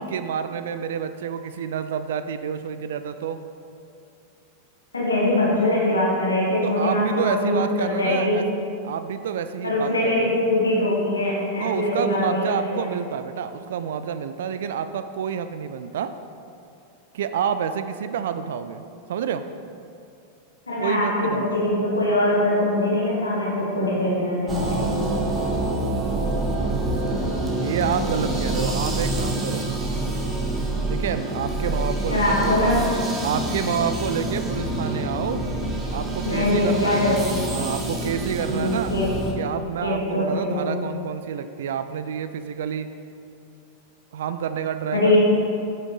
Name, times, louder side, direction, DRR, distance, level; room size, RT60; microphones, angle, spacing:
voice 1, 0.0-3.4 6.6-8.5 8.8-10.5 11.6-16.1 17.1-18.8 19.1-19.4 20.8-21.6 27.5-29.7 30.9-32.9 33.2-35.4 35.9-37.2 37.5-38.9 39.4-42.9 44.1-45.2, right 8 dB, 60° right, 11 dB, 0.3 m, -28 dB
voice 2, 4.9-8.4 9.6-12.8 20.7-24.8 32.1-32.9 36.2-37.3 38.4-39.1 39.8-40.7 44.9-45.2, left 1 dB, 75° left, -5 dB, 1.4 m, -22 dB
sound 1, 24.5-39.3, right 2 dB, 20° right, 1.4 m, -26 dB
8.8 x 6.3 x 3.9 m, 2.6 s
figure-of-eight pair, 90°, 0 cm